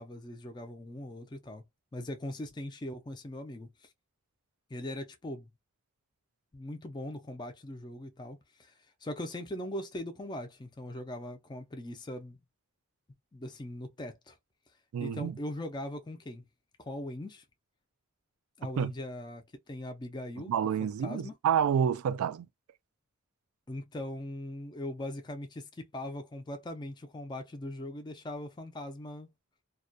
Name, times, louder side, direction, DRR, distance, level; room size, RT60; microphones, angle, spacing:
voice 1, 0.0-1.6 1.9-3.9 4.7-5.5 6.5-8.7 9.0-12.4 13.3-14.4 15.0-16.4 16.8-17.4 18.6-20.5 20.8-21.3 23.7-29.3, left 1 dB, 20° left, 0.4 m, -40 dB
voice 2, 14.9-15.4 18.8-18.9 20.5-22.5, right 8 dB, 75° right, 0.3 m, -28 dB
2.3 x 2.1 x 2.5 m
head